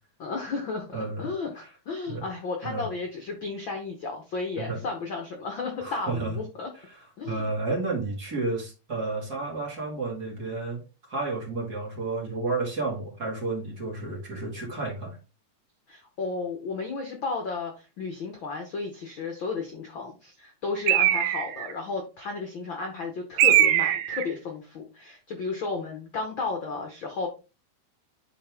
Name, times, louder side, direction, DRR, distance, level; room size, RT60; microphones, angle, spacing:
voice 1, 0.2-6.7 7.2-7.5 15.9-27.3, left 4 dB, 75° left, 3 dB, 1.1 m, -33 dB
voice 2, 0.9-1.3 2.1-2.2 2.6-2.9 4.6-4.8 5.8-6.3 6.9-10.8 11.1-15.2, right 3 dB, 30° right, -2 dB, 2.3 m, -31 dB
Bird, 20.9-21.7 23.4-24.3, right 12 dB, 85° right, 2.4 m, -21 dB
9.5 x 4.3 x 3.6 m, 0.30 s
omnidirectional pair, 4.1 m